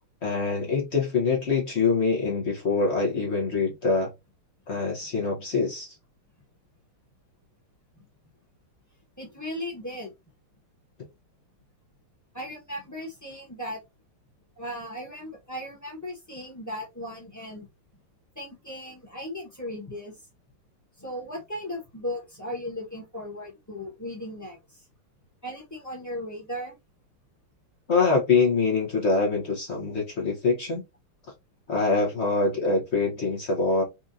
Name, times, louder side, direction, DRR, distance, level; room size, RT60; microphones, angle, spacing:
voice 1, 0.2-4.1 4.7-6.0 27.9-30.8 31.7-33.8, left 4 dB, 65° left, 0.6 m, -24 dB
voice 2, 9.2-10.1 12.3-13.8 14.6-17.7 18.3-20.3 21.0-24.9 25.4-26.7, left 1 dB, 10° left, 0.8 m, -37 dB
4.3 x 2.5 x 2.6 m
omnidirectional pair, 2.3 m